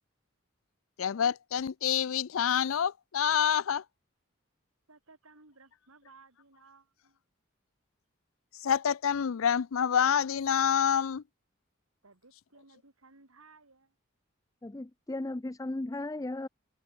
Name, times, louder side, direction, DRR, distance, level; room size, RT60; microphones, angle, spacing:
voice 1, 1.0-3.8 8.6-11.2, left 8 dB, 75° left, 0.5 m, -27 dB
voice 2, 4.9-7.2 12.0-13.9, right 3 dB, 90° right, 3.4 m, -59 dB
voice 3, 14.6-16.5, left 2 dB, 15° left, 0.4 m, -36 dB
head